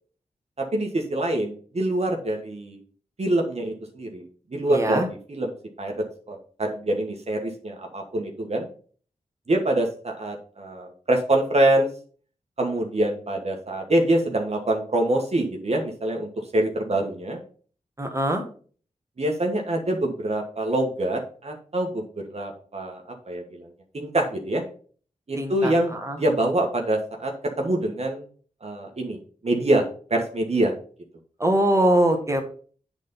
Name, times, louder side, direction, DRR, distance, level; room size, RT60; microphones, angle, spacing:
voice 1, 0.7-2.8 3.2-4.2 4.5-5.9 6.3-8.7 9.5-11.9 12.6-17.4 19.2-23.0 23.3-23.7 23.9-24.6 25.3-27.3 27.6-28.2 28.6-29.2 29.4-29.8 30.1-30.7, right 1 dB, 50° right, 1 dB, 1.6 m, -25 dB
voice 2, 4.7-5.1 18.0-18.4 25.4-25.7 26.0-26.2 31.4-32.4, right 1 dB, 20° right, 3 dB, 2.0 m, -22 dB
8.2 x 4.1 x 5.6 m, 0.43 s
cardioid pair, 50°, 14 cm